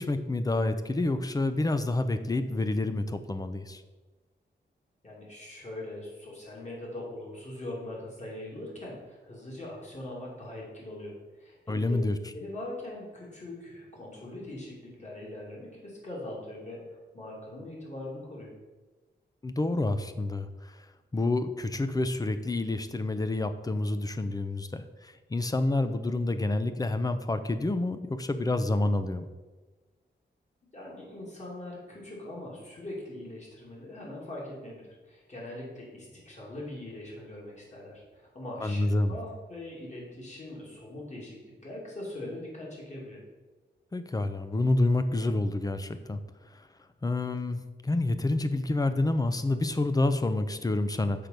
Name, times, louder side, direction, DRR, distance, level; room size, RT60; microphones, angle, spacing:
voice 1, 0.0-3.8 11.7-12.2 19.4-20.8 21.1-29.3 38.6-39.1 43.9-46.2 46.5-46.7 47.0-51.3, left 2 dB, 20° left, 10 dB, 0.5 m, -28 dB
voice 2, 5.0-12.0 12.3-18.5 30.7-43.2, left 1 dB, 40° left, -4 dB, 2.7 m, -41 dB
6.6 x 5.2 x 5.9 m, 1.3 s
wide cardioid pair, 130°, 19 cm